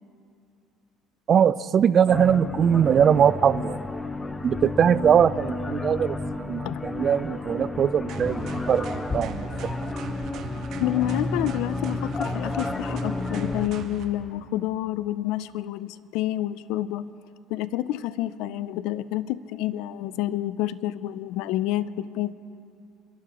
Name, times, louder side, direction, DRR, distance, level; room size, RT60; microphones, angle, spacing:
voice 1, 1.3-3.8 4.4-9.5, right 8 dB, 40° right, 16 dB, 0.4 m, -21 dB
sound 1, 2.1-13.7, left 3 dB, 15° left, 0.6 m, -31 dB
sound 2, 8.1-14.1, right 6 dB, 60° right, 1.2 m, -39 dB
voice 2, 10.8-17.1 17.5-22.3, left 14 dB, 75° left, 17 dB, 0.4 m, -29 dB
27.5 x 11.5 x 3.0 m, 2.6 s
cardioid pair, 115°, 0 cm